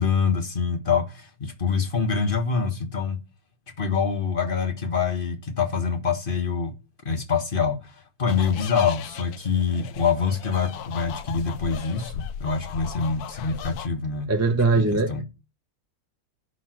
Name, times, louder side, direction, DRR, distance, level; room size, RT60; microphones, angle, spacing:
voice 1, 0.0-3.2 3.8-6.7 7.0-14.3 14.8-15.2, left 6 dB, 35° left, 1.6 m, -25 dB
sound 1, 8.3-13.9, left 9 dB, 75° left, 1.2 m, -38 dB
voice 2, 14.3-15.1, right 3 dB, 10° right, 1.0 m, -20 dB
11.0 x 5.0 x 6.0 m
omnidirectional pair, 1.7 m